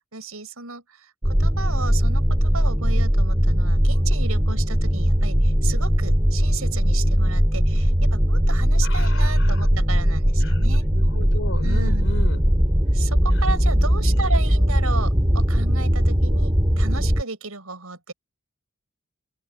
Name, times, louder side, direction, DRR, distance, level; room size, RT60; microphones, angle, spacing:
voice 1, 0.1-10.8 11.6-12.0 12.9-18.1, right 4 dB, 75° right, 6.6 m, -34 dB
sound 1, 1.2-17.2, equal, 20° right, 2.8 m, -19 dB
voice 2, 8.8-9.7 10.4-12.4 13.5-13.6 13.9-14.5, left 2 dB, 65° left, 5.6 m, -36 dB
open air
head